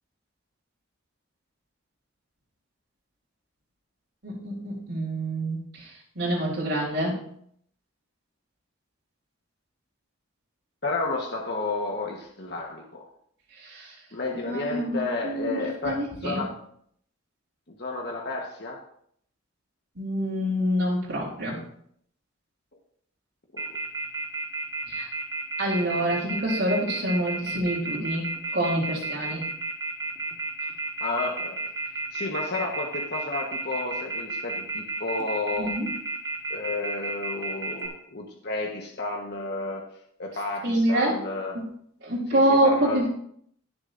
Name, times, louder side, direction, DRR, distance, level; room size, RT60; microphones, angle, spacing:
voice 1, 4.2-5.9 6.2-7.2 13.6-13.9 14.5-16.4 20.0-21.6 24.9-25.1 25.6-28.3 28.5-29.4 35.6-35.9 40.6-41.2 42.0-43.1, right 1 dB, 65° right, -5 dB, 3.6 m, -26 dB
voice 2, 10.8-13.1 14.1-16.6 17.8-18.8 23.5-23.6 25.8-26.3 31.0-31.6 32.1-35.8 36.5-39.9 40.2-41.6 42.3-43.1, left 3 dB, 50° left, -1 dB, 1.3 m, -32 dB
Telephone, 23.6-37.9, right 3 dB, 20° right, 1.7 m, -31 dB
19.5 x 6.8 x 2.6 m, 0.66 s
head